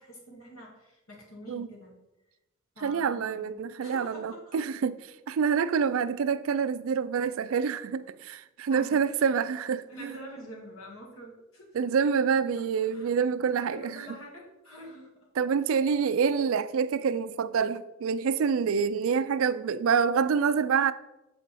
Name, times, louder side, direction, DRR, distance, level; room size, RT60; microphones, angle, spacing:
voice 1, 0.0-1.9 2.8-4.6 8.7-9.4 9.9-11.8 12.8-13.1 13.6-15.1, equal, 75° left, 1.9 m, -46 dB
voice 2, 2.8-10.2 11.7-14.0 15.4-20.9, right 6 dB, 70° right, 0.4 m, -27 dB
7.4 x 4.5 x 4.1 m
head